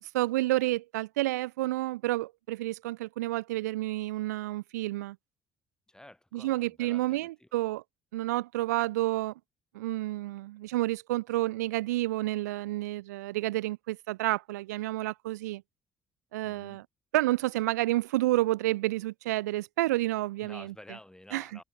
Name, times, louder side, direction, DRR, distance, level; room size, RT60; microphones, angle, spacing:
voice 1, 0.0-5.2 6.3-7.8 8.1-9.3 9.7-15.6 16.3-16.8 17.1-20.7 21.3-21.4, right 17 dB, 85° right, 0.6 m, -30 dB
voice 2, 5.9-7.5 16.4-16.8 20.4-21.6, left 1 dB, 10° left, 3.9 m, -51 dB
hypercardioid pair, 55°, 9 cm